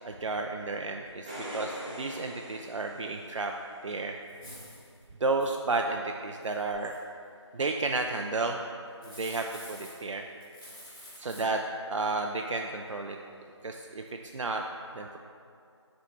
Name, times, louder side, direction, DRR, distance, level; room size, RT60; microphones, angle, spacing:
voice 1, 0.0-3.5 3.8-4.2 5.2-6.9 7.5-8.6 9.0-10.2 11.2-11.6 11.9-13.2 13.6-14.0 14.3-14.6 14.9-15.2, right 3 dB, 90° right, 2 dB, 0.4 m, -32 dB
sound 1, 1.1-3.6 6.7-6.8, equal, 15° right, 0.6 m, -42 dB
sound 2, 4.3-4.9 5.4-5.7 6.4-7.0 8.8-10.1 10.4-11.4, equal, 5° left, 1.0 m, -48 dB
6.9 x 3.2 x 4.3 m, 2.4 s
figure-of-eight pair, 170°, 15 cm